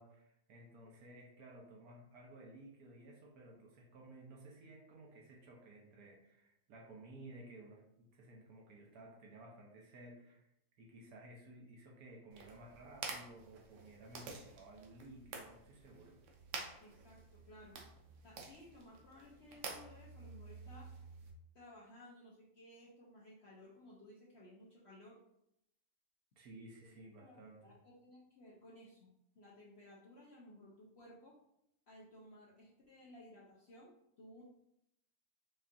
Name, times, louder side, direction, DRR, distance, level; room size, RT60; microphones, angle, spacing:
voice 1, 0.0-10.5 10.8-16.2 26.4-27.8, right 2 dB, 70° right, 0 dB, 1.2 m, -56 dB
sound 1, 12.3-21.3, right 4 dB, 85° right, 1.3 m, -50 dB
voice 2, 16.8-17.8 18.2-20.9 21.5-25.2 27.2-29.1 29.4-31.4 31.9-33.9 34.2-34.4, left 1 dB, 60° left, -5 dB, 0.7 m, -58 dB
5.0 x 2.4 x 2.7 m, 0.80 s
omnidirectional pair, 1.8 m